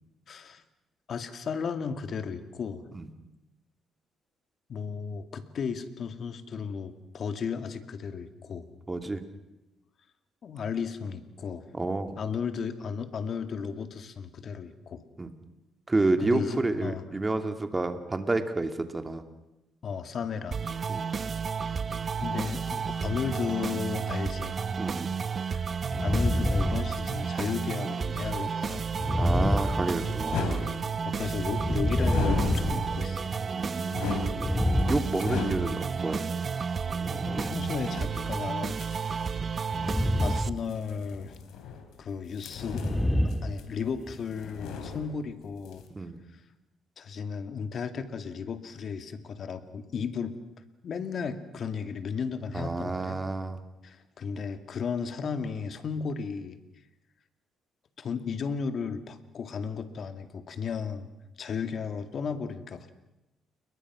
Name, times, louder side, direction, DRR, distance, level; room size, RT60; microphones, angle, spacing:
voice 1, 0.3-0.6 1.1-2.9 4.7-8.7 10.4-11.7 12.2-15.0 16.2-17.0 19.8-20.6 22.2-24.6 25.5-25.7 26.0-28.9 31.0-33.4 37.4-38.8 40.2-41.4 42.0-42.9 43.2-45.8 47.0-50.3 50.8-53.2 53.8-56.6 58.0-61.1 61.4-62.9, left 6 dB, 55° left, 9 dB, 2.2 m, -34 dB
voice 2, 8.9-9.2 11.7-12.1 15.2-15.3 15.9-19.2 20.9-21.0 24.8-25.1 29.2-30.7 33.5-34.2 34.9-36.2 46.0-46.2 52.5-53.6, right 2 dB, 20° right, 7 dB, 2.7 m, -29 dB
sound 1, 20.5-40.5, right 6 dB, 40° right, 0.8 m, -32 dB
sound 2, 25.9-27.5 29.0-30.5 31.4-33.5 34.2-35.8 36.9-37.7 39.7-40.6 40.9-41.2 42.6-44.2, left 1 dB, 5° left, 1.7 m, -28 dB
sound 3, 29.4-31.3 32.0-33.1 33.5-36.0 36.6-36.7 37.5-39.2 40.6-42.0 42.3-43.9 44.2-45.4 45.6-45.8, left 5 dB, 85° left, 3.9 m, -37 dB
29.5 x 22.0 x 6.2 m, 0.95 s
cardioid pair, 90°, 0 cm